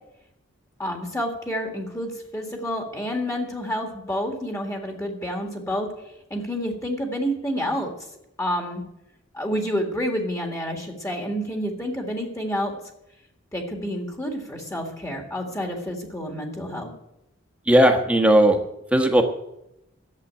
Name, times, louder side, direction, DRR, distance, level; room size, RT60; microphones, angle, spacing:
voice 1, 0.8-5.9 6.3-7.9 8.4-8.8 9.3-12.7 13.5-16.9, equal, 15° left, 2 dB, 1.9 m, -29 dB
voice 2, 17.7-18.6 18.9-19.2, right 1 dB, 5° right, 4 dB, 1.3 m, -16 dB
11.5 x 7.7 x 8.9 m, 0.85 s
head